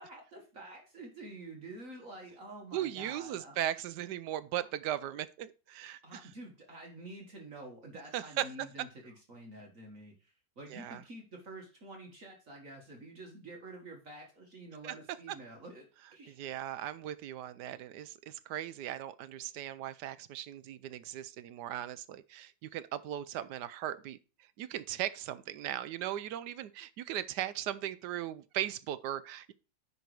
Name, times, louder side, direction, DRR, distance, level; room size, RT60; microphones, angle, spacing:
voice 1, 0.0-3.6 6.0-16.4, right 2 dB, 45° right, 1.7 m, -48 dB
voice 2, 2.7-6.2 8.1-8.5 10.7-11.0 16.3-24.2 24.6-29.5, right 12 dB, 75° right, 1.1 m, -38 dB
10.5 x 4.0 x 4.7 m
omnidirectional pair, 2.0 m